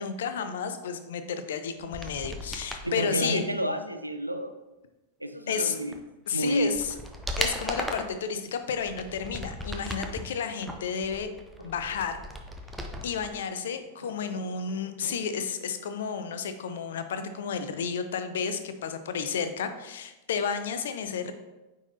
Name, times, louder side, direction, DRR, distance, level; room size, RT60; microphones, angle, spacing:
voice 1, 0.0-3.4 5.5-5.8 6.3-7.0 7.4-11.3 11.6-12.2 13.0-21.3, left 6 dB, 60° left, 9 dB, 0.5 m, -32 dB
sound 1, 1.8-2.9 5.9-6.0 6.5-8.2 8.7-10.2 10.6-13.3 13.6-13.7, equal, 5° right, 0.6 m, -36 dB
voice 2, 2.8-4.5 5.2-5.9 6.3-6.7, equal, 85° right, 8 dB, 0.4 m, -30 dB
sound 2, 10.6-12.0 13.6-15.2, equal, 75° left, 1.1 m, -48 dB
9.0 x 3.8 x 2.8 m, 1.1 s
figure-of-eight pair, 90°, 0 cm